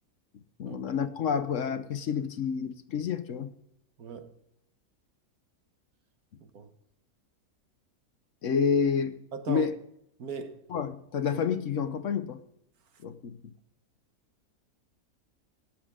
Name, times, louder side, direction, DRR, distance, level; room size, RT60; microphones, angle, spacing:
voice 1, 0.6-3.5 8.4-9.2 9.5-9.7 10.7-12.4 13.0-13.4, left 6 dB, 60° left, 1.1 m, -29 dB
voice 2, 9.3-9.7 10.2-10.6, right 6 dB, 75° right, 1.6 m, -38 dB
18.0 x 7.3 x 3.7 m
omnidirectional pair, 1.6 m